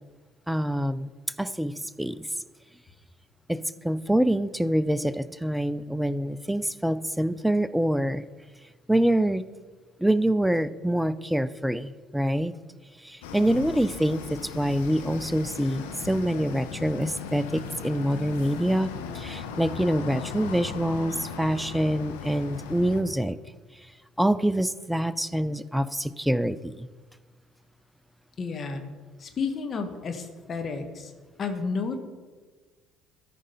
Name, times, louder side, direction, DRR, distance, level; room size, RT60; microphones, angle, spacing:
voice 1, 0.5-1.1 1.4-2.3 3.5-8.3 8.9-9.5 10.0-12.5 13.0-23.4 24.2-26.9, right 1 dB, 5° right, 0.4 m, -26 dB
sound 1, 13.2-23.0, left 6 dB, 80° left, 0.8 m, -38 dB
voice 2, 28.4-28.9 29.2-31.1 31.4-32.0, left 4 dB, 45° left, 1.2 m, -31 dB
13.0 x 5.0 x 5.5 m
hypercardioid pair, 60°, 0 cm